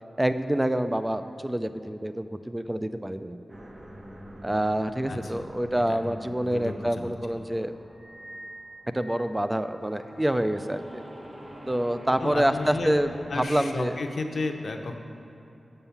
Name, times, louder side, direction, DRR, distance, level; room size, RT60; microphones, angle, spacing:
voice 1, 0.2-3.4 4.4-7.7 8.9-11.0 11.7-13.1 13.3-13.9, right 1 dB, 15° right, 10 dB, 0.3 m, -27 dB
sound 1, 3.5-9.4 9.8-13.4, equal, 35° right, 1.0 m, -46 dB
voice 2, 5.1-5.5 5.9-6.2 6.4-7.1 7.4-7.5 12.2-12.9 13.3-15.0, left 3 dB, 70° left, 5 dB, 0.6 m, -33 dB
sound 2, 7.8-10.5, right 1 dB, 30° left, 1.5 m, -48 dB
6.8 x 5.5 x 7.0 m, 2.9 s
wide cardioid pair, 70°, 0 cm